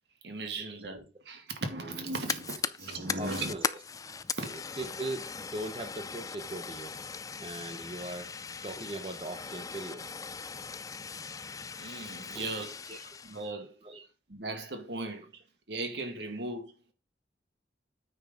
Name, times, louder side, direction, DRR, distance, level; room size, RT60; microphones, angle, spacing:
voice 1, 0.2-3.5 4.4-4.5 11.8-12.8 13.2-13.8 14.3-15.4 15.7-16.7, right 2 dB, 70° right, 2.0 m, -37 dB
Fire, 1.9-13.5, left 5 dB, 20° left, 0.4 m, -39 dB
voice 2, 3.2-3.7 4.5-7.0 7.4-8.3 8.6-10.2 12.3-12.6 12.9-13.0 13.8-14.0, right 2 dB, 30° right, 0.9 m, -40 dB
9.4 x 4.5 x 5.2 m
head